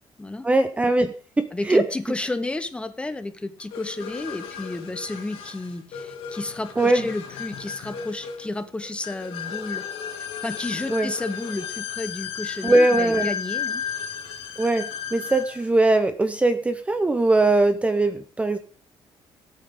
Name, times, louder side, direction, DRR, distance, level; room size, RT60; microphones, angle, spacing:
voice 1, 0.4-1.8 6.8-7.1 10.9-11.1 12.6-13.3 14.6-18.6, right 2 dB, 15° right, 10 dB, 0.8 m, -21 dB
voice 2, 1.5-9.8 10.4-13.8, left 2 dB, 10° left, 10 dB, 1.1 m, -32 dB
sound 1, 3.7-15.7, left 8 dB, 85° left, 2.6 m, -33 dB
18.5 x 8.6 x 3.8 m, 0.43 s
cardioid pair, 140°, 9 cm